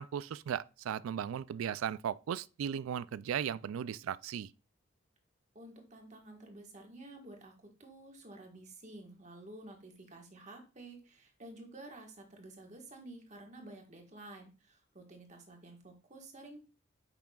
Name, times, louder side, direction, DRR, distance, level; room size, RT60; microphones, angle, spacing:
voice 1, 0.0-4.5, right 8 dB, 80° right, 0.3 m, -36 dB
voice 2, 5.5-7.5 7.8-16.6, right 2 dB, 35° right, 1.5 m, -51 dB
8.6 x 5.9 x 2.4 m
head